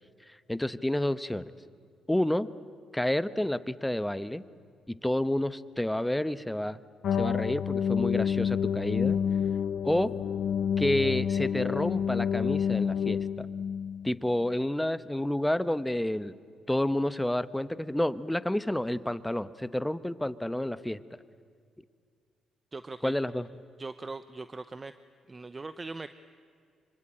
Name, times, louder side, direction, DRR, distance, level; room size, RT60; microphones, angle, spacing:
voice 1, 0.5-1.4 2.1-2.5 2.9-4.4 4.9-6.8 7.2-9.2 9.8-10.1 10.8-13.5 14.0-16.3 16.7-21.0 23.0-23.5, left 1 dB, 5° left, 14 dB, 1.0 m, -29 dB
sound 1, 7.0-14.1, left 8 dB, 70° left, 0.7 m, -28 dB
voice 2, 22.7-23.1 23.8-24.9 25.3-26.1, right 3 dB, 25° right, 12 dB, 0.8 m, -40 dB
25.5 x 25.5 x 9.0 m, 2.2 s
cardioid pair, 90°, 0 cm